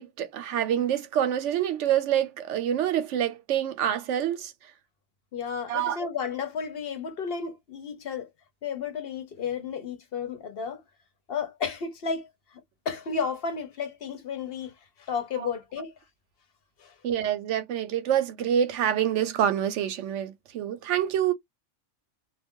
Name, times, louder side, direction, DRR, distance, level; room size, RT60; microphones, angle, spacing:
voice 1, 0.0-4.5 5.7-6.1 15.4-15.5 17.0-21.3, right 10 dB, 85° right, 0.9 m, -26 dB
voice 2, 5.3-8.3 8.6-10.8 11.3-12.6 12.9-14.7 15.0-15.9 16.8-16.9, left 6 dB, 60° left, 0.9 m, -33 dB
2.3 x 2.2 x 3.5 m
omnidirectional pair, 1.2 m